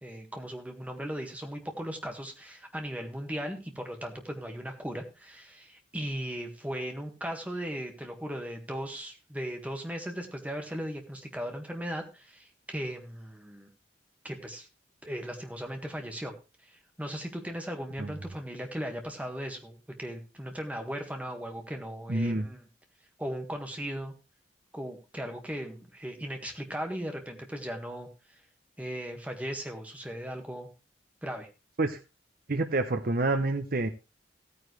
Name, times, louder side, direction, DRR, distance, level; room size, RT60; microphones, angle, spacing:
voice 1, 0.0-13.7 14.2-14.7 15.0-16.3 16.6-22.6 23.2-24.1 24.7-28.4 28.8-30.7 31.2-31.5, equal, 10° right, 3 dB, 1.8 m, -37 dB
voice 2, 22.1-22.5 31.8-32.0 32.5-33.9, right 2 dB, 50° right, 7 dB, 0.8 m, -28 dB
15.5 x 9.5 x 3.2 m, 0.30 s
head